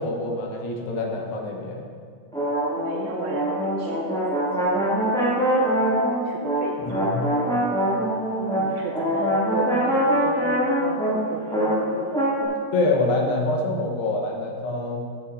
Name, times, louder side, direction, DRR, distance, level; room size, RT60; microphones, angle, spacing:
voice 1, 0.0-1.9 6.8-7.3 12.7-15.0, left 2 dB, 70° left, 0 dB, 3.1 m, -26 dB
sound 1, 2.3-12.4, equal, ahead, 1.1 m, -23 dB
voice 2, 2.8-7.8 8.6-12.1, right 5 dB, 80° right, 0 dB, 2.3 m, -36 dB
14.5 x 11.0 x 2.7 m, 2.2 s
omnidirectional pair, 5.2 m